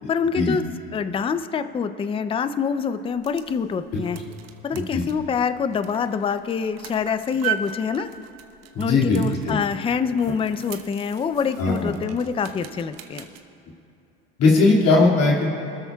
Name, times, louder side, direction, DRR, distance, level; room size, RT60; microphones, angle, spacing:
voice 1, 0.1-0.6 0.9-4.2 4.6-8.1 8.8-13.3, left 6 dB, 15° left, 11 dB, 0.5 m, -25 dB
sound 1, 3.0-13.4, right 9 dB, 55° right, 1.0 m, -38 dB
voice 2, 4.7-5.0 8.7-9.2 9.5-9.6 11.6-11.9 14.4-15.5, left 3 dB, 50° left, -3 dB, 2.3 m, -19 dB
25.0 x 13.0 x 2.3 m, 2.7 s
supercardioid pair, 105°, 31 cm